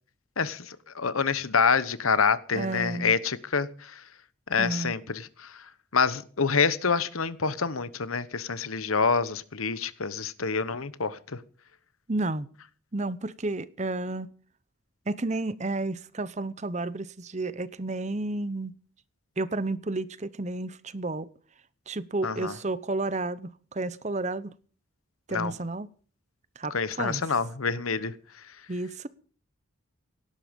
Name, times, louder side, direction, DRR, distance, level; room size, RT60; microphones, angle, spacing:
voice 1, 0.4-4.0 4.5-11.4 22.2-22.5 25.3-25.5 26.7-28.1, left 5 dB, 90° left, 1.1 m, -27 dB
voice 2, 2.5-3.1 4.6-4.9 12.1-12.5 12.9-14.3 15.1-18.7 19.4-21.3 21.9-24.5 25.3-25.9 26.6-27.2 28.7-29.1, right 2 dB, 35° right, 0.8 m, -31 dB
18.0 x 11.5 x 5.3 m
head